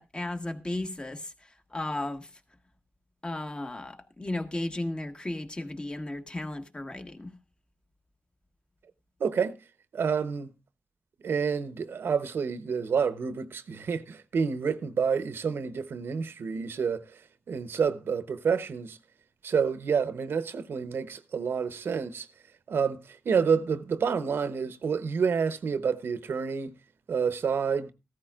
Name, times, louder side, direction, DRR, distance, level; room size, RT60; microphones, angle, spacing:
voice 1, 0.0-1.3 1.7-2.3 3.2-7.3, left 1 dB, 25° left, 1.5 m, -34 dB
voice 2, 9.2-9.5 9.9-10.5 11.2-17.2 17.5-19.0 19.4-22.3 22.7-26.7 27.1-27.9, right 6 dB, 80° right, 0.9 m, -28 dB
15.0 x 13.0 x 2.4 m
cardioid pair, 65°, 4 cm